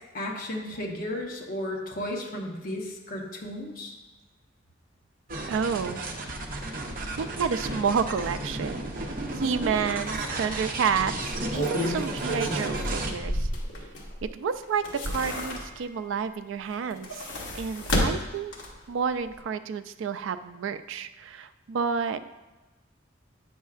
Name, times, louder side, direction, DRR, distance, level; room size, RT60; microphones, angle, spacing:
voice 1, 0.1-3.9, left 1 dB, 45° left, -1 dB, 0.9 m, -34 dB
sound 1, 5.3-13.1, right 2 dB, 45° right, 0.7 m, -33 dB
voice 2, 5.5-6.0 7.2-8.9 9.3-13.5 14.2-17.3 17.5-18.5 18.9-22.2, right 6 dB, 80° right, 11 dB, 0.3 m, -30 dB
sound 2, 9.6-9.7 10.1-10.2 11.2-14.2 14.6-16.0 16.8-18.9 19.3-19.4, equal, 70° left, 1.1 m, -31 dB
8.3 x 6.2 x 2.4 m, 1.1 s
head